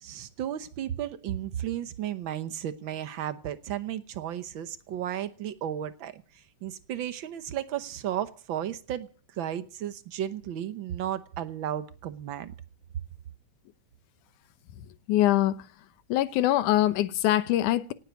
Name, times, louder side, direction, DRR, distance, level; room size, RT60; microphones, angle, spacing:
voice 1, 0.0-12.5, right 11 dB, 75° right, 1.1 m, -34 dB
voice 2, 14.8-15.7 16.1-17.9, left 14 dB, 85° left, 2.4 m, -24 dB
18.0 x 9.9 x 8.1 m
omnidirectional pair, 3.5 m